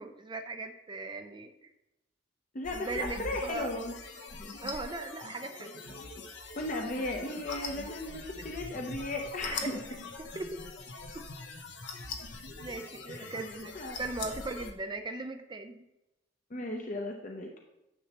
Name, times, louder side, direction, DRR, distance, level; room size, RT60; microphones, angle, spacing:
voice 1, 0.0-1.7 2.7-3.7 4.6-6.1 10.2-10.4 12.6-15.9, right 3 dB, 25° right, 6 dB, 0.4 m, -39 dB
voice 2, 2.5-3.9 4.3-4.5 6.6-9.8 13.1-13.5 13.7-14.0 16.5-17.5, left 2 dB, 45° left, 2 dB, 0.7 m, -36 dB
sound 1, 2.6-14.7, left 3 dB, 70° left, 1.0 m, -43 dB
10.0 x 7.0 x 3.0 m, 0.94 s
head